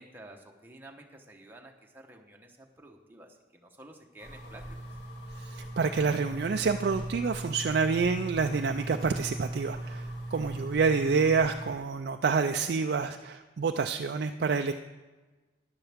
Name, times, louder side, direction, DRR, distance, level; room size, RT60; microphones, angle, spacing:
voice 1, 0.0-4.8, right 1 dB, 10° right, 1 dB, 1.0 m, -51 dB
sound 1, 4.2-11.7, right 1 dB, 65° left, 2.1 m, -39 dB
voice 2, 5.4-14.7, right 5 dB, 60° right, 6 dB, 0.4 m, -28 dB
12.5 x 10.5 x 3.5 m, 1.2 s
head